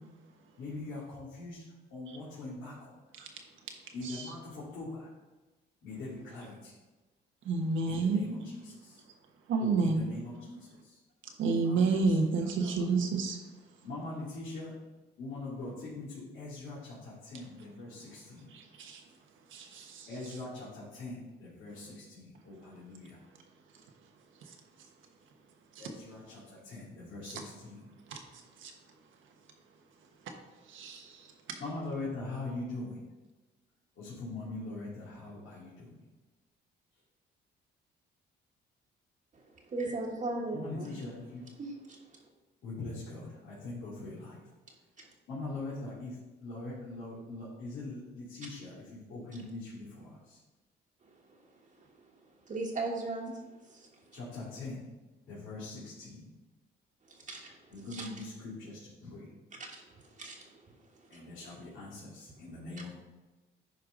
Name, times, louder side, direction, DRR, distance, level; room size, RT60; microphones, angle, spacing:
voice 1, 0.6-1.6 1.9-2.9 3.9-5.1 5.8-6.7 7.9-9.0 9.6-10.6 11.5-11.9 13.8-14.7 15.2-18.5 20.1-23.2 25.8-27.8 31.6-33.0 34.0-36.0 40.5-41.4 42.6-44.4 45.3-46.1 46.4-50.4 54.1-54.8 55.3-56.3 57.7-59.3 61.1-62.9, left 2 dB, 75° left, -10 dB, 2.8 m, -42 dB
voice 2, 4.0-4.3 7.4-8.2 9.5-10.1 11.4-13.4 17.8-17.9 18.5-19.0 19.5-20.4 23.7-23.8 24.4-24.6 25.7-25.9 27.2-27.4 28.1-28.7 30.6-31.6, right 4 dB, 80° right, 3 dB, 1.3 m, -31 dB
voice 3, 39.7-41.1 41.6-42.0 45.0-45.1 52.5-53.4 53.7-53.9 57.1-58.2 59.6-59.8 60.1-60.6 61.1-61.2 61.5-61.6, right 2 dB, 40° right, -1 dB, 1.5 m, -38 dB
10.0 x 4.7 x 3.9 m, 1.2 s
cardioid pair, 90°, 20 cm